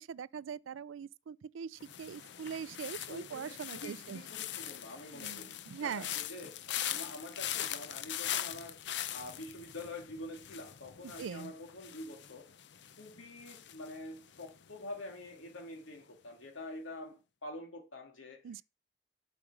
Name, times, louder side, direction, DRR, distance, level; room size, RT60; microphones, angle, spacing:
voice 1, 0.0-4.2 5.1-6.1 11.0-11.5 18.4-18.6, right 7 dB, 80° right, 0.4 m, -42 dB
sound 1, 1.8-14.8 15.1-15.6, left 11 dB, 60° left, 0.5 m, -42 dB
voice 2, 3.1-8.8 9.1-12.5 13.0-18.4, left 1 dB, 85° left, 2.4 m, -46 dB
8.7 x 5.0 x 6.0 m
head